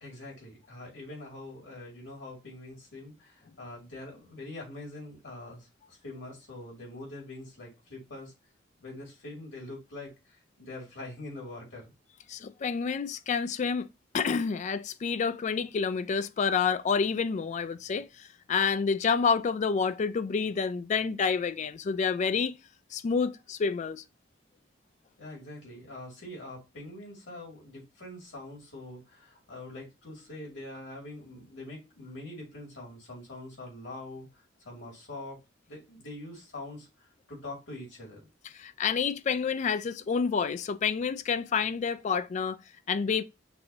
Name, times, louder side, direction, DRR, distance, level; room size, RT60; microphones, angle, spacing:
voice 1, 0.0-8.3 8.8-11.9 25.2-34.3 34.6-35.4 35.7-36.9 37.3-38.3, left 2 dB, 80° left, 2.4 m, -44 dB
voice 2, 12.3-13.9 14.1-22.5 22.9-24.0 38.6-42.6 42.9-43.2, left 5 dB, 40° left, 0.3 m, -28 dB
6.0 x 2.6 x 2.7 m
head